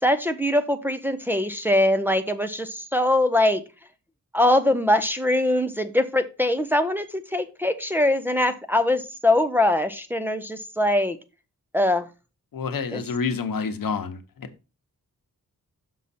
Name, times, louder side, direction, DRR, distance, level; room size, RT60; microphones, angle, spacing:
voice 1, 0.0-3.6 4.3-11.2 11.7-12.0 12.9-13.0, left 1 dB, 5° right, 0.5 m, -22 dB
voice 2, 12.5-14.5, left 5 dB, 80° left, 0.9 m, -28 dB
6.2 x 5.7 x 4.1 m
wide cardioid pair, 150°, 34 cm